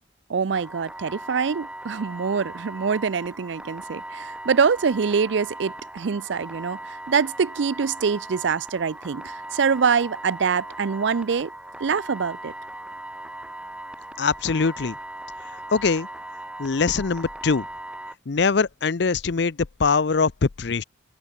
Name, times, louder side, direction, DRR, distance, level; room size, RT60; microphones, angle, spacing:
voice 1, 0.3-11.5 11.8-12.5, right 6 dB, 70° right, 0.5 m, -24 dB
sound 1, 0.5-18.2, right 1 dB, 5° right, 1.0 m, -39 dB
voice 2, 14.2-15.0 15.5-16.1 16.6-17.7 18.3-20.8, left 4 dB, 65° left, 0.6 m, -23 dB
head